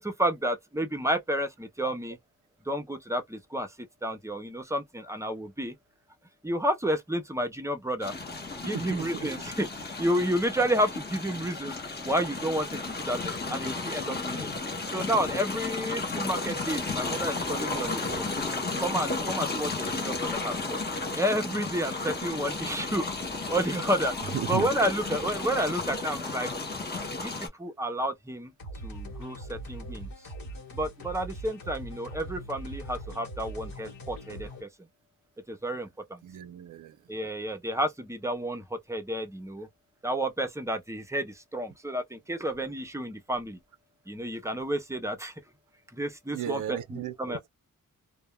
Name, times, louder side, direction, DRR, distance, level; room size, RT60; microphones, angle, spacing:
voice 1, 0.0-2.2 2.7-5.7 6.4-8.2 8.6-11.8 12.0-14.5 14.9-18.3 18.8-20.8 21.1-23.1 23.5-26.5 27.2-27.3 27.6-28.5 28.8-30.1 30.7-34.7 35.5-36.2 37.1-39.7 40.0-43.6 44.1-45.3 45.9-47.4, right 1 dB, 10° right, 0.5 m, -31 dB
sound 1, 8.0-27.5, left 3 dB, 30° left, 0.8 m, -33 dB
voice 2, 8.6-9.3 24.3-24.7 36.2-37.0 46.3-47.5, right 10 dB, 65° right, 0.5 m, -35 dB
sound 2, 28.6-34.6, right 1 dB, 75° left, 1.2 m, -41 dB
2.2 x 2.2 x 3.0 m
wide cardioid pair, 155°, 34 cm